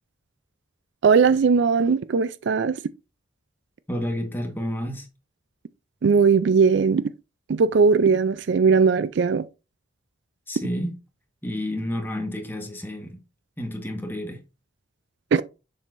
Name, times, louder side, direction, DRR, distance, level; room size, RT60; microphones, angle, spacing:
voice 1, 1.0-2.8 6.0-7.1 7.5-9.5 15.3-15.4, right 5 dB, 60° right, 0.4 m, -19 dB
voice 2, 3.9-5.1 10.5-11.0 11.4-13.2 13.6-14.4, equal, 10° left, 1.4 m, -30 dB
7.1 x 6.3 x 2.6 m
head